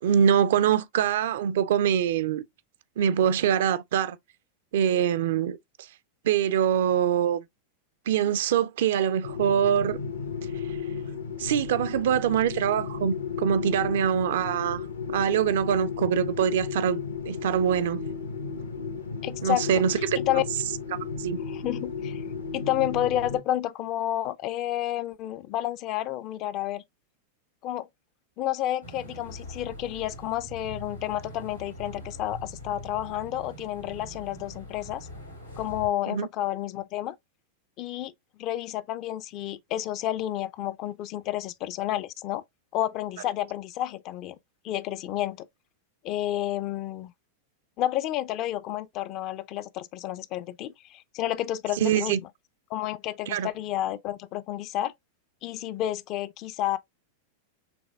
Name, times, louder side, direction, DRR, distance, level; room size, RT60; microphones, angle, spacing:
voice 1, 0.0-2.4 3.0-4.2 4.7-5.6 6.2-7.4 8.1-10.0 11.4-17.0 17.3-18.0 19.4-20.2 21.2-21.4 36.1-36.3 51.8-52.2 53.3-53.5, right 9 dB, 55° right, 0.4 m, -24 dB
sound 1, 9.2-23.4, left 6 dB, 70° left, 0.8 m, -34 dB
voice 2, 19.2-19.6 20.2-20.4 21.4-22.2 22.5-26.8 27.6-27.9 28.4-35.1 35.6-37.2 37.8-38.1 38.4-42.4 42.7-44.4 44.6-45.5 46.0-47.1 47.8-52.2 52.7-54.9 55.4-56.8, left 13 dB, 40° left, 0.4 m, -30 dB
sound 2, 28.8-35.9, equal, 90° left, 1.9 m, -42 dB
6.0 x 3.2 x 2.3 m
figure-of-eight pair, 90°, 0 cm